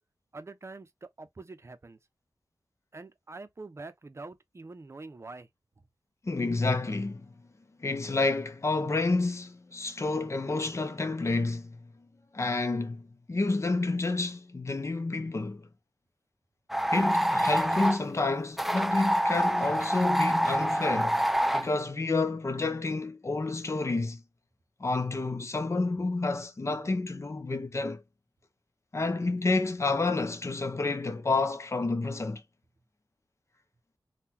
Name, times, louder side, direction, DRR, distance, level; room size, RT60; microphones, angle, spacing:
voice 1, 0.3-2.0 2.9-5.5, right 3 dB, 40° right, 0.7 m, -45 dB
voice 2, 6.2-7.3 7.8-11.8 12.3-15.7 16.9-21.2 21.5-24.2 24.8-28.0 28.9-32.4, left 3 dB, 40° left, 0.8 m, -29 dB
sound 1, 16.7-18.0 18.6-21.7, equal, 5° right, 0.3 m, -26 dB
3.7 x 2.3 x 2.8 m
wide cardioid pair, 70°, 7 cm